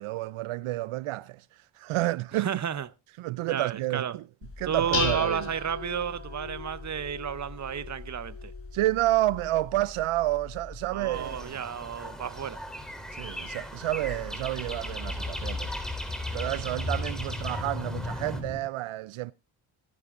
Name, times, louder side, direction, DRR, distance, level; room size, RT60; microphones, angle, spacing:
voice 1, 0.0-1.4 1.8-2.5 3.2-4.2 4.6-5.5 8.7-11.5 13.2-15.7 16.3-19.3, right 16 dB, 85° right, 0.6 m, -30 dB
voice 2, 2.4-2.9 3.5-4.2 4.6-8.5 10.9-12.6, right 8 dB, 35° right, 0.8 m, -32 dB
Dishes pots and pans, 4.4-11.5, left 5 dB, 65° left, 4.1 m, -37 dB
sound 1, 11.1-18.4, equal, ahead, 3.4 m, -39 dB
sound 2, 13.2-18.6, left 2 dB, 20° left, 2.3 m, -36 dB
18.0 x 11.0 x 2.5 m
cardioid pair, 70°, 48 cm